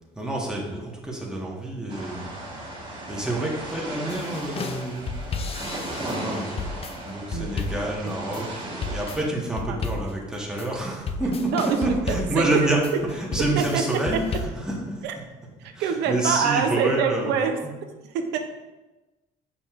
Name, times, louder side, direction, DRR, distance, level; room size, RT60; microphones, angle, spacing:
voice 1, 0.1-2.3 3.1-5.1 6.0-15.1 15.7-17.8, right 1 dB, 5° right, -3 dB, 1.4 m, -28 dB
sound 1, 1.9-9.2, right 1 dB, 30° right, 1.7 m, -36 dB
sound 2, 4.1-14.5, left 4 dB, 35° left, 0.5 m, -33 dB
voice 2, 7.3-7.7 8.0-9.0 9.7-9.8 11.2-12.7 13.6-13.8 15.0-15.1 15.8-17.6 18.1-18.4, right 6 dB, 85° right, 5 dB, 0.6 m, -26 dB
7.2 x 5.3 x 2.5 m, 1.1 s
cardioid pair, 110°, 17 cm